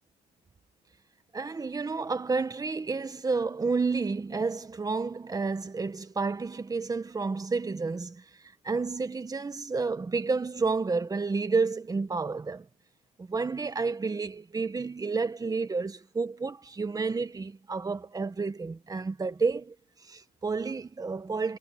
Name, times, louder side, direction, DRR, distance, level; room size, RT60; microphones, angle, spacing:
voice 1, 1.3-8.2 8.6-12.7 13.2-19.7 20.1-21.6, right 4 dB, 20° right, 1.7 m, -30 dB
cardioid pair, 110°, 17 cm